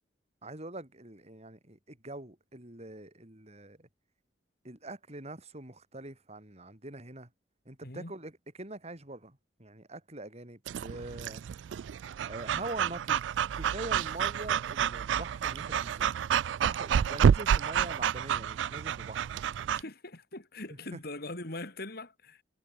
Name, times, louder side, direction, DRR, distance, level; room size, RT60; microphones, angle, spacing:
voice 1, 0.4-3.9 4.6-7.3 7.7-8.3 8.6-11.4 12.2-13.2 13.5-16.1 16.5-19.3 20.9-21.0, right 2 dB, 35° right, 4.6 m, -44 dB
voice 2, 7.8-8.1 19.7-22.4, left 2 dB, 60° left, 4.1 m, -41 dB
Breathing / Dog, 10.7-19.8, right 8 dB, 85° right, 0.3 m, -29 dB
head